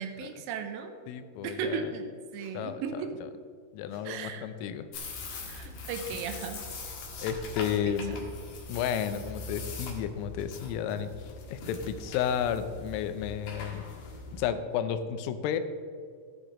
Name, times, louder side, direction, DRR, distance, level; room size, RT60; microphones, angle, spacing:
voice 1, 0.0-1.0 1.4-3.2 4.1-4.4 5.5-6.6 7.9-8.2, right 6 dB, 80° right, 6 dB, 3.1 m, -36 dB
voice 2, 1.1-1.9 2.5-3.0 3.7-4.9 7.2-8.2 8.7-13.9 14.3-15.6, left 8 dB, 85° left, 10 dB, 3.4 m, -32 dB
sound 1, 2.4-2.5 3.9-4.1 5.3-5.5 6.7-6.8 7.9-8.1 9.2-9.4 10.3-10.5 11.6-11.8, right 1 dB, 55° right, 1.1 m, -60 dB
sound 2, 4.9-14.4, left 3 dB, 70° left, 1.8 m, -42 dB
15.0 x 10.0 x 3.1 m, 2.2 s
omnidirectional pair, 5.9 m